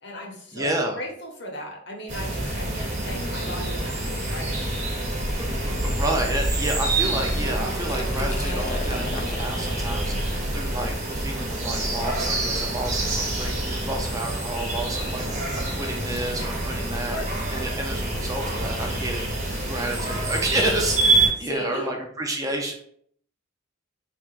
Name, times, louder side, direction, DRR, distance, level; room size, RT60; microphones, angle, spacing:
voice 1, 0.0-4.6 5.7-6.0 12.9-13.2 17.0-17.3 21.4-21.9, equal, 60° left, 0 dB, 1.1 m, -36 dB
voice 2, 0.5-1.0 5.4-17.2 17.5-19.3 19.7-22.7, right 1 dB, 15° right, 2 dB, 0.5 m, -30 dB
sound 1, 2.1-21.3, right 2 dB, 35° right, 1.0 m, -27 dB
Liquid, 7.8-13.5, left 2 dB, 35° left, 0.5 m, -40 dB
4.3 x 3.5 x 2.5 m, 0.64 s
head